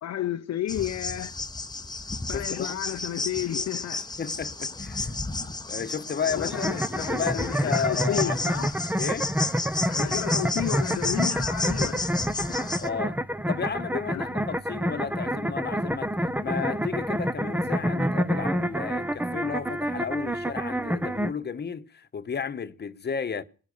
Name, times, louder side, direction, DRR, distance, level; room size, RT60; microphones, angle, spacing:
voice 1, 0.0-1.3 2.3-4.1 6.3-8.8 9.9-12.0 14.1-14.3, left 12 dB, 60° left, 0.8 m, -32 dB
sound 1, 0.7-12.9, left 3 dB, 15° left, 1.0 m, -32 dB
voice 2, 2.3-2.8 4.2-5.1 5.7-6.7 7.0-8.4 9.0-9.3 12.8-13.2 13.5-16.1 16.4-23.4, left 6 dB, 35° left, 1.2 m, -33 dB
sound 2, 6.5-21.3, equal, 5° right, 0.7 m, -28 dB
19.5 x 10.5 x 6.6 m
cardioid pair, 90°, 30 cm